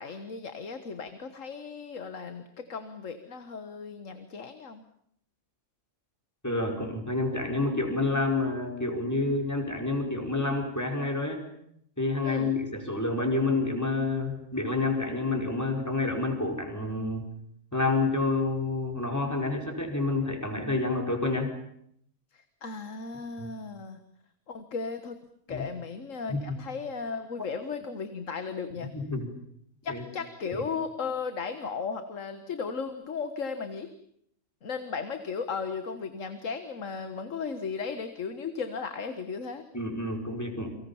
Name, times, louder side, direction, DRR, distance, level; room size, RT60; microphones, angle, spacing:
voice 1, 0.0-4.8 12.2-12.5 22.3-24.0 24.5-25.2 25.5-28.9 29.8-33.9 34.6-39.6, left 5 dB, 65° left, 9 dB, 1.9 m, -36 dB
voice 2, 6.4-11.4 12.0-17.3 17.7-21.5 23.4-23.5 25.5-25.6 26.3-26.6 28.9-29.3 29.9-30.0 39.7-40.8, left 3 dB, 10° left, 3 dB, 5.0 m, -28 dB
30.0 x 24.0 x 7.2 m, 0.70 s
omnidirectional pair, 1.5 m